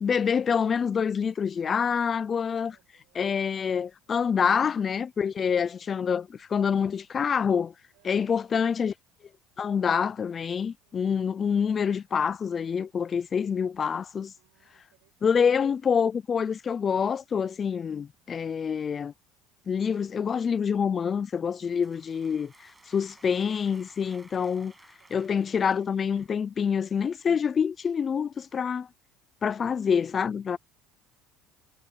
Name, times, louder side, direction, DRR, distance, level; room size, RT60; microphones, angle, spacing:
voice 1, 0.0-2.8 3.1-7.7 8.0-8.9 9.6-14.3 15.2-19.1 19.7-24.7 25.1-28.9 29.4-30.6, left 6 dB, 30° left, 0.5 m, -26 dB
voice 2, 2.5-3.6 5.7-6.4 7.9-8.6 10.8-11.2 14.4-15.6 22.3-23.4 25.0-25.3 30.5-30.6, right 33 dB, 80° right, 7.9 m, -69 dB
sound 1, 21.4-26.5, right 2 dB, 10° right, 6.9 m, -57 dB
cardioid pair, 125°, 0 cm